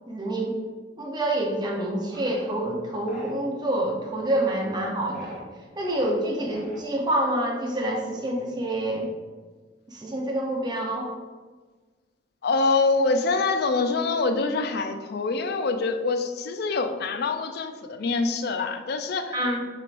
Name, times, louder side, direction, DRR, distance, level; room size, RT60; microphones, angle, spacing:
voice 1, 0.1-0.5 1.0-5.4 5.8-9.1 9.9-11.1 19.3-19.6, right 1 dB, 25° right, -1 dB, 0.7 m, -27 dB
sound 1, 2.1-2.4 3.1-3.3 4.2-4.6 5.1-5.4 5.8-6.1 6.5-7.0, equal, ahead, 1.1 m, -43 dB
voice 2, 12.4-19.4, left 3 dB, 60° left, 7 dB, 0.4 m, -25 dB
5.9 x 3.4 x 2.5 m, 1.4 s
head